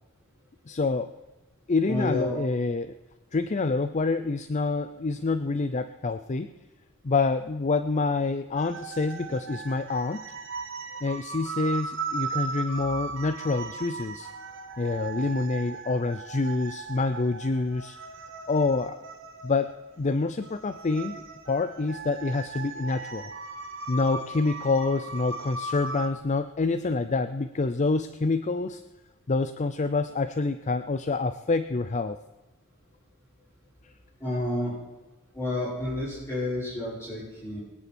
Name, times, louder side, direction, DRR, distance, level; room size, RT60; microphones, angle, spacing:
voice 1, 0.7-1.1 1.7-3.0 3.3-6.5 7.0-10.2 11.0-14.3 14.8-18.0 18.5-19.0 19.4-19.7 20.0-23.3 23.9-28.8 29.3-32.2, left 3 dB, 35° left, 10 dB, 0.5 m, -27 dB
voice 2, 1.9-2.4 34.2-34.7 35.3-37.6, left 1 dB, 15° left, -10 dB, 5.5 m, -30 dB
sound 1, 8.6-26.1, right 4 dB, 65° right, 1.4 m, -38 dB
23.0 x 9.9 x 4.3 m, 1.2 s
head